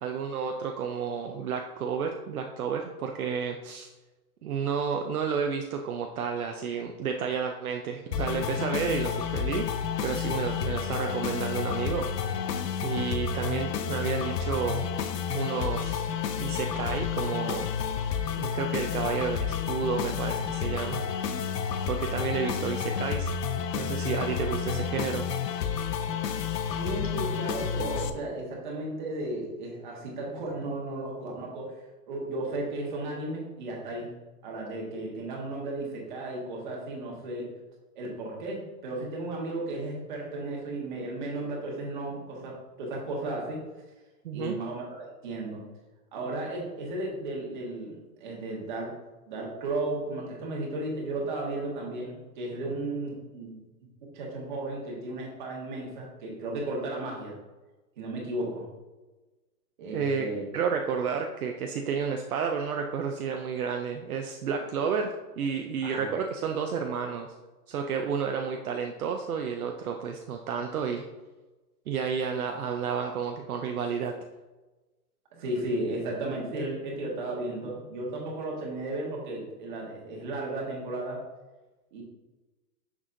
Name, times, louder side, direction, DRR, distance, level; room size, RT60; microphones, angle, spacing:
voice 1, 0.0-3.9 4.4-9.7 10.0-12.1 12.8-14.8 15.3-16.1 16.4-17.7 18.4-21.4 21.9-23.3 23.7-25.3 44.2-44.6 59.9-60.3 60.5-67.3 67.7-71.0 71.9-74.1, right 6 dB, 60° right, 3 dB, 0.6 m, -31 dB
sound 1, 8.1-28.1, left 7 dB, 80° left, 0.7 m, -30 dB
voice 2, 26.8-31.8 32.1-34.1 34.4-37.5 37.9-43.6 44.3-45.6 46.1-49.0 49.3-53.6 54.1-57.4 58.0-58.7 59.8-60.4 65.8-66.1 75.3-81.3 81.9-82.0, right 2 dB, 30° right, -2 dB, 1.3 m, -34 dB
6.2 x 6.2 x 2.6 m, 1.2 s
hypercardioid pair, 175°, 48 cm